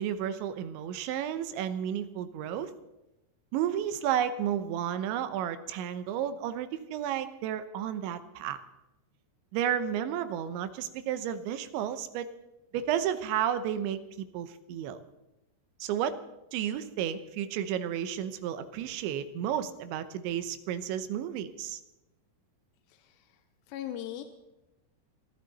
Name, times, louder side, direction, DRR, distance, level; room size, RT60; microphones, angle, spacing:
voice 1, 0.0-2.7 3.5-8.6 9.5-12.3 12.7-14.0 14.3-15.0 15.8-16.2 16.5-21.8, right 10 dB, 85° right, 12 dB, 3.2 m, -32 dB
voice 2, 22.9-23.4 23.7-24.2, left 11 dB, 80° left, 7 dB, 2.9 m, -39 dB
22.5 x 14.5 x 4.1 m, 0.95 s
omnidirectional pair, 5.2 m